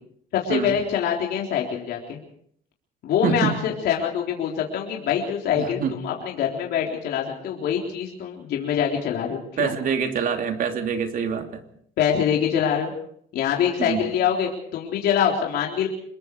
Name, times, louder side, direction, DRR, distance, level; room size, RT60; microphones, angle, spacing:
voice 1, 0.3-2.2 3.0-9.7 12.0-12.9 13.3-15.9, left 8 dB, 70° left, -1 dB, 3.8 m, -24 dB
voice 2, 3.2-3.6 5.5-6.0 9.6-11.6 13.8-14.1, right 7 dB, 55° right, 5 dB, 3.0 m, -25 dB
26.0 x 21.5 x 4.8 m, 0.65 s
cardioid pair, 110°, 17 cm